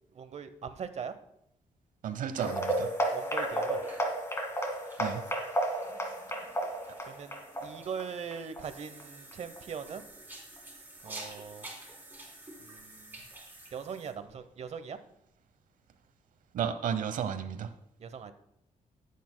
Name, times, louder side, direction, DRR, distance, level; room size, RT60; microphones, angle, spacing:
voice 1, 0.1-1.1 3.1-3.8 7.0-7.3 7.6-10.0 11.0-11.7 12.6-13.2 13.7-15.0 18.0-18.3, right 6 dB, 55° right, 11 dB, 0.8 m, -40 dB
voice 2, 2.0-2.9 5.0-5.2 16.5-17.7, right 8 dB, 85° right, 11 dB, 0.8 m, -33 dB
sound 1, 2.4-9.0 9.3-9.6 10.0-10.1 10.6-10.7, right 1 dB, 20° left, 1.9 m, -33 dB
sound 2, 2.4-14.1, right 2 dB, 15° right, 3.2 m, -50 dB
14.5 x 8.4 x 2.2 m, 0.78 s
cardioid pair, 95°, 13 cm